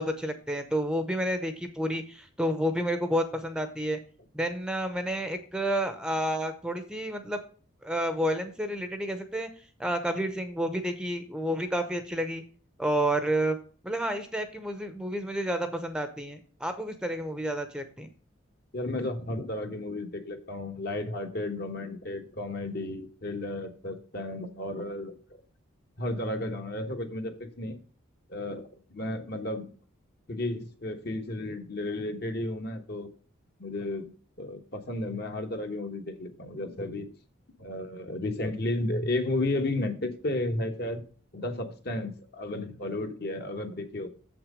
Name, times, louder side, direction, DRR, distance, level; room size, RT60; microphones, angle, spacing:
voice 1, 0.0-4.0 4.3-7.4 7.8-9.5 9.8-12.4 12.8-13.6 13.8-18.1, equal, 5° right, 8 dB, 0.7 m, -30 dB
voice 2, 18.7-25.1 26.0-27.8 28.3-29.7 30.3-33.1 33.6-34.1 34.4-37.1 37.6-41.0 41.3-44.1, left 2 dB, 50° left, 5 dB, 1.2 m, -33 dB
7.4 x 6.0 x 4.9 m, 0.42 s
head